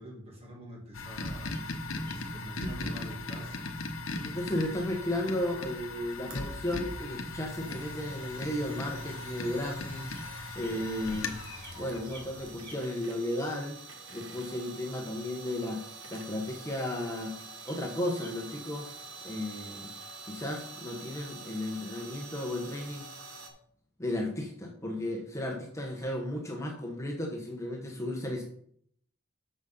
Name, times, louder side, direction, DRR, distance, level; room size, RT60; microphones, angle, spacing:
voice 1, 0.0-1.5 2.0-3.7, right 1 dB, 30° right, -1 dB, 2.5 m, -45 dB
sound 1, 0.9-12.7, left 2 dB, 80° left, 1.0 m, -38 dB
sound 2, 1.0-1.1 1.5-1.6 2.1-2.4 2.6-3.5 3.8-4.2 4.4-4.7 5.2-5.4 5.6-5.8 7.6-7.7 9.6-9.7 10.1-10.2 10.6-11.7 12.0-12.8 15.6-15.7 17.1-17.2 17.6-17.8 18.1-18.3, right 1 dB, 60° right, 4.2 m, -54 dB
voice 2, 4.2-11.4 11.8-13.8 14.1-17.4 17.6-18.9 19.2-19.9 20.2-23.0 24.0-28.4, left 1 dB, 15° left, 0 dB, 1.1 m, -34 dB
sound 3, 4.7-23.5, right 4 dB, 80° right, 1.6 m, -47 dB
6.5 x 6.2 x 5.4 m, 0.64 s
head